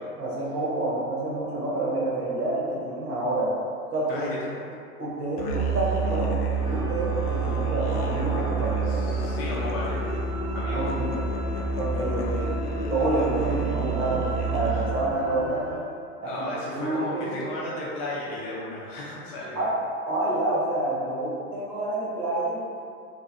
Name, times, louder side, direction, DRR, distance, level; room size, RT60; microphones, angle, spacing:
voice 1, 0.2-3.5 3.9-4.3 5.0-6.3 6.6-9.0 10.7-11.2 11.8-12.5 12.9-15.7 16.2-17.4 19.5-19.7 20.1-22.6, right 2 dB, 80° right, -6 dB, 1.3 m, -28 dB
voice 2, 4.1-4.7 8.9-10.1 10.5-10.9 16.2-19.6, left 1 dB, 30° left, -5 dB, 0.4 m, -34 dB
Musical instrument, 5.4-15.2, right 4 dB, 90° left, 0.5 m, -28 dB
sound 1, 6.6-15.8, right 1 dB, 30° right, 0.7 m, -37 dB
3.2 x 2.4 x 2.6 m, 2.4 s
hypercardioid pair, 110°, 45 cm